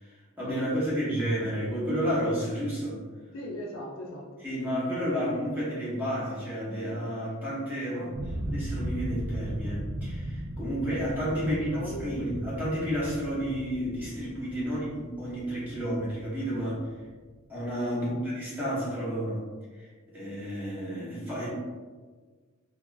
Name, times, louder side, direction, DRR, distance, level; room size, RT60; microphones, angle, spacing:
voice 1, 0.0-3.0 4.4-8.1 8.4-11.7 12.0-16.8 17.5-19.4 19.7-21.5, equal, 10° right, -9 dB, 0.9 m, -31 dB
voice 2, 3.3-4.3 7.9-8.2 11.4-12.2 14.6-14.7 17.9-18.2, left 1 dB, 60° left, -2 dB, 0.5 m, -39 dB
sound 1, 8.1-17.0, right 1 dB, 45° right, 0.7 m, -37 dB
3.7 x 2.3 x 2.3 m, 1.4 s
head